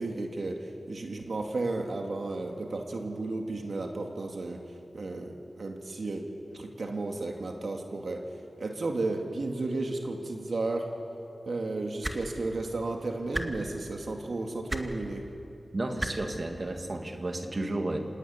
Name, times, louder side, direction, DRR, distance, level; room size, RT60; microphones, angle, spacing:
voice 1, 0.0-4.6 4.9-6.2 6.5-8.2 8.6-10.9 11.5-15.2, right 2 dB, 75° right, 2 dB, 2.4 m, -33 dB
sound 1, 12.0-12.2 13.3-13.5 14.7-14.8 16.0-16.1 17.4-17.5, right 1 dB, 15° right, 2.2 m, -31 dB
voice 2, 15.7-18.0, right 2 dB, 50° right, 4 dB, 2.6 m, -32 dB
26.5 x 18.0 x 9.7 m, 2.7 s
cardioid pair, 45°, 0 cm